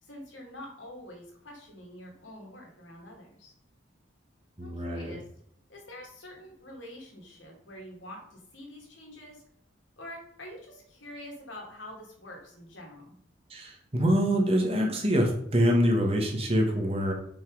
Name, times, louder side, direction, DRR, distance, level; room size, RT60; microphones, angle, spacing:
voice 1, 0.0-3.5 4.6-5.2 5.7-9.4 10.0-13.2, left 1 dB, 80° left, -1 dB, 2.6 m, -46 dB
voice 2, 4.6-5.1 13.5-17.1, equal, 30° right, 1 dB, 1.4 m, -25 dB
5.9 x 5.4 x 4.8 m, 0.69 s
head